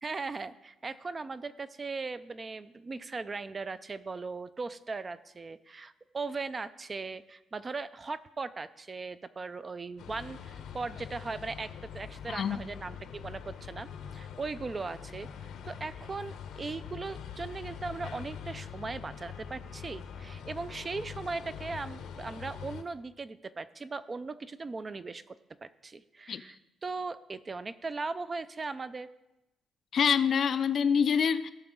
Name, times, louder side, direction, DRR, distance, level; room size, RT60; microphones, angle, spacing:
voice 1, 0.0-15.3 15.6-25.4 25.6-29.1, right 4 dB, 25° right, 13 dB, 0.4 m, -38 dB
sound 1, 10.0-22.8, left 7 dB, 85° left, 0.9 m, -44 dB
voice 2, 12.3-12.6 26.3-26.4 29.9-31.5, left 7 dB, 50° left, 13 dB, 0.4 m, -26 dB
17.0 x 5.8 x 3.7 m, 0.94 s
cardioid pair, 135°, 0 cm